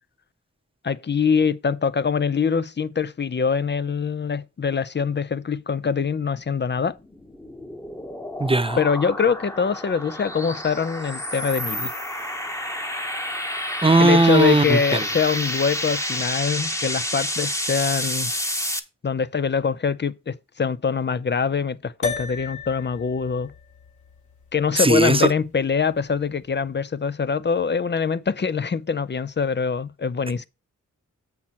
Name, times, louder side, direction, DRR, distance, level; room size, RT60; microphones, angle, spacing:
voice 1, 0.8-7.0 8.8-11.9 14.0-18.3 19.0-23.5 24.5-30.4, left 6 dB, 35° left, 0.5 m, -24 dB
sound 1, 6.9-18.8, left 1 dB, 10° left, 1.0 m, -29 dB
voice 2, 8.4-8.8 13.8-14.8 24.8-25.2, right 2 dB, 15° right, 0.8 m, -17 dB
sound 2, 22.0-26.6, left 5 dB, 65° left, 2.6 m, -36 dB
7.3 x 5.9 x 4.3 m
cardioid pair, 55°, 32 cm